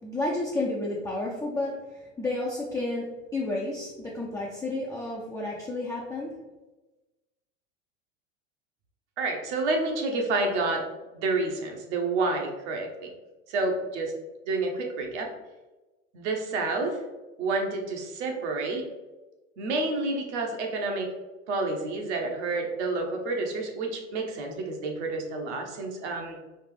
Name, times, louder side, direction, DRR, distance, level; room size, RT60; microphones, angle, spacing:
voice 1, 0.0-6.3, left 2 dB, 10° left, -4 dB, 0.5 m, -31 dB
voice 2, 9.2-10.8 11.1-13.1 13.5-14.1 14.5-15.3 16.1-17.0 17.4-18.9 19.6-21.1 21.5-26.4, right 3 dB, 65° right, 2 dB, 1.0 m, -29 dB
4.3 x 2.4 x 3.3 m, 1.1 s
hypercardioid pair, 85°, 38 cm